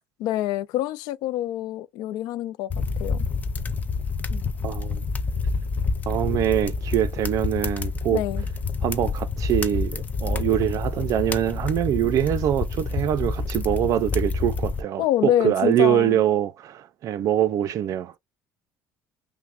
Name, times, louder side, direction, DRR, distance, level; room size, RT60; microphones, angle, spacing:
voice 1, 0.2-2.7 3.0-3.3 4.3-4.4 8.1-8.4 15.0-16.2, left 13 dB, 70° left, 0.4 m, -26 dB
sound 1, 2.7-14.8, left 4 dB, 20° left, 0.5 m, -28 dB
voice 2, 4.6-5.0 6.1-8.2 8.8-18.1, right 11 dB, 50° right, 0.5 m, -24 dB
5.7 x 2.1 x 2.5 m
cardioid pair, 140°, 7 cm